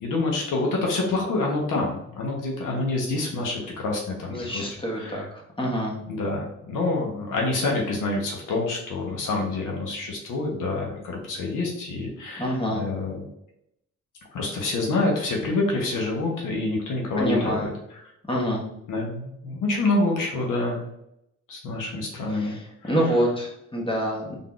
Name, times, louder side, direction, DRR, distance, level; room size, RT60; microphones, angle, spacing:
voice 1, 0.0-5.3 6.1-13.2 14.3-18.0 18.9-20.9 21.5-22.6 22.8-23.0, left 2 dB, 85° left, 0 dB, 0.9 m, -27 dB
voice 2, 4.3-5.2 5.6-5.9 12.4-12.8 17.2-17.7 18.3-18.6 22.3-22.6 22.9-24.4, equal, 15° left, -2 dB, 1.2 m, -26 dB
3.8 x 3.6 x 2.3 m, 0.80 s
cardioid pair, 80°, 31 cm